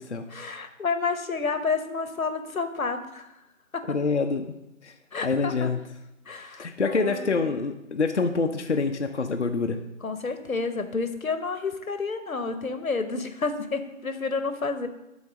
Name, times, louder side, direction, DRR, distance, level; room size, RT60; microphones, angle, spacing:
voice 1, 0.3-3.3 3.7-4.0 5.1-5.7 6.3-7.6 10.0-14.9, left 4 dB, 90° left, 9 dB, 1.0 m, -30 dB
voice 2, 3.9-4.5 4.8-4.9 5.2-5.8 6.6-9.8, left 4 dB, 55° left, 5 dB, 0.5 m, -26 dB
7.3 x 3.9 x 6.1 m, 0.93 s
figure-of-eight pair, 175°, 40 cm